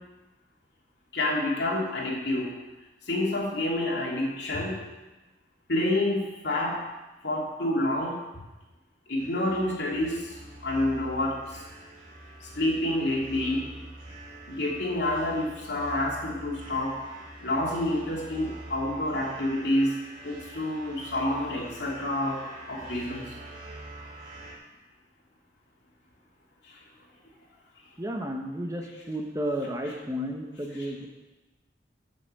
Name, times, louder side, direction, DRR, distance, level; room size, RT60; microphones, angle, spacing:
voice 1, 1.1-2.5 3.1-4.8 5.7-6.8 7.2-8.2 9.1-10.4 10.6-11.6 12.4-13.8 14.5-17.0 17.4-20.0 20.2-22.4 22.7-23.2 26.7-26.8 30.7-30.9, left 1 dB, 75° left, -3 dB, 2.7 m, -28 dB
sound 1, 9.2-24.6, right 1 dB, 50° right, 2.6 m, -45 dB
voice 2, 28.0-31.1, equal, 20° right, 2 dB, 1.1 m, -32 dB
8.1 x 7.1 x 7.5 m, 1.1 s
head